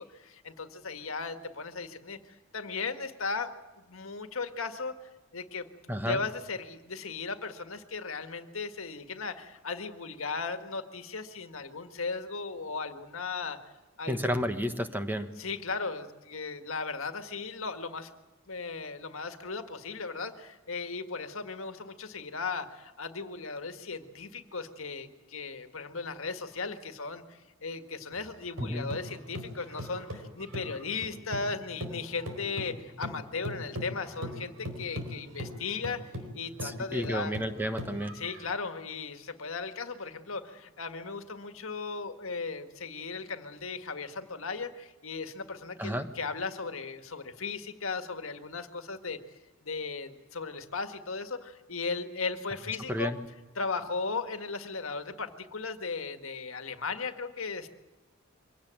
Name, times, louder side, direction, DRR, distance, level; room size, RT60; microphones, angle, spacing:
voice 1, 0.0-5.0 5.3-5.7 6.0-13.7 14.0-14.2 15.4-18.1 18.5-36.0 36.3-37.4 38.1-49.2 49.6-53.1 53.5-57.7, left 4 dB, 70° left, 8 dB, 1.8 m, -37 dB
voice 2, 5.9-6.2 14.1-15.3 28.6-28.9 36.6-38.2 45.8-46.1 52.9-53.2, equal, 10° right, 8 dB, 1.3 m, -31 dB
sound 1, 28.1-31.5 31.8-38.5, left 1 dB, 70° right, 4.4 m, -40 dB
24.0 x 17.5 x 8.9 m, 1.2 s
head